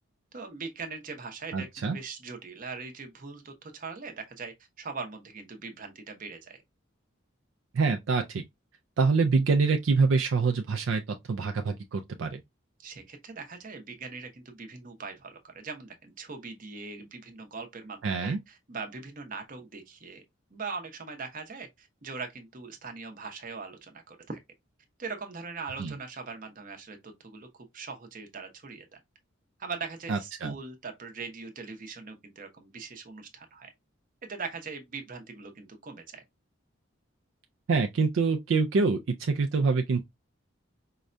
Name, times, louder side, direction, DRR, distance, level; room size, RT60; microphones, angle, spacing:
voice 1, 0.3-6.6 12.8-20.2 20.5-24.4 25.0-29.0 29.6-33.7 34.2-36.2, right 4 dB, 45° right, 0.8 m, -41 dB
voice 2, 1.5-2.0 7.7-8.4 9.0-11.0 11.3-12.4 18.0-18.4 25.8-25.9 30.1-30.5 37.7-40.0, right 4 dB, 70° right, 0.4 m, -25 dB
4.7 x 2.2 x 2.5 m
head